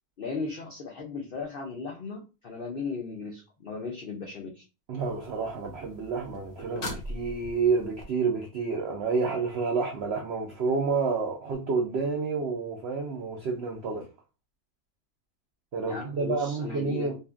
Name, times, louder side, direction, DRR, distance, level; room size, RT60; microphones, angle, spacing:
voice 1, 0.2-4.6 15.9-17.1, left 4 dB, 85° left, 0.4 m, -36 dB
voice 2, 4.9-14.1 15.7-17.2, right 4 dB, 80° right, 0.5 m, -29 dB
sound 1, 5.0-8.0 11.5-11.6, left 1 dB, 60° left, 1.1 m, -41 dB
2.7 x 2.5 x 2.3 m
omnidirectional pair, 1.7 m